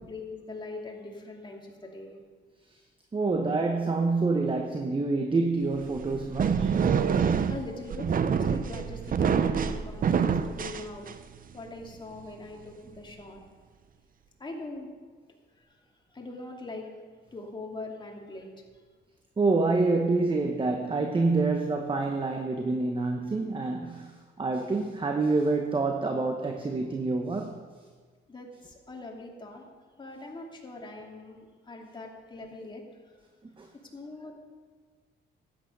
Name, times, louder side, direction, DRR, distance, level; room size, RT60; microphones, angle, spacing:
voice 1, 0.1-2.2 7.5-11.1 11.5-13.4 14.4-14.9 15.6-15.8 16.1-16.9 17.3-18.5 28.3-29.7 30.0-33.2 33.7-34.3, left 2 dB, 25° left, 0 dB, 2.5 m, -42 dB
voice 2, 3.1-6.8 19.4-27.6 33.4-33.7, right 3 dB, 25° right, 4 dB, 1.0 m, -27 dB
sound 1, 5.8-11.4, right 6 dB, 45° right, 0.6 m, -26 dB
12.5 x 9.1 x 5.4 m, 1.5 s
cardioid pair, 90°, 20 cm